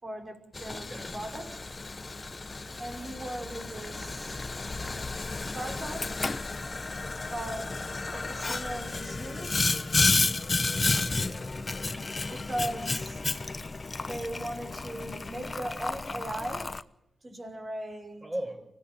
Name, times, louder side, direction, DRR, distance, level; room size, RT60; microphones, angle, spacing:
voice 1, 0.0-1.6 2.8-4.4 5.4-6.1 7.3-7.9 8.1-9.6 12.3-13.2 14.0-16.7 17.2-18.3, right 1 dB, 35° right, 5.5 m, -38 dB
Boiling, 0.5-16.8, left 3 dB, 35° left, 1.0 m, -32 dB
voice 2, 9.8-10.1 10.8-12.1 18.2-18.7, right 1 dB, 20° right, 6.7 m, -40 dB
24.5 x 17.5 x 9.1 m
supercardioid pair, 45°, 0 cm